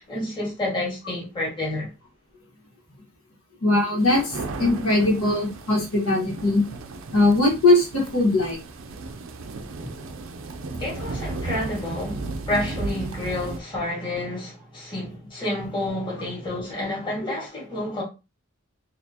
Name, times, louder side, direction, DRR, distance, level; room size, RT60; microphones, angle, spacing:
voice 1, 0.0-1.9 10.8-18.0, left 1 dB, 20° left, 1.7 m, -29 dB
voice 2, 3.6-6.6 7.1-8.6 9.8-9.9 17.2-17.3, left 2 dB, 80° left, 1.5 m, -20 dB
sound 1, 4.0-13.6, right 3 dB, 65° right, 0.5 m, -35 dB
4.2 x 2.6 x 2.8 m
head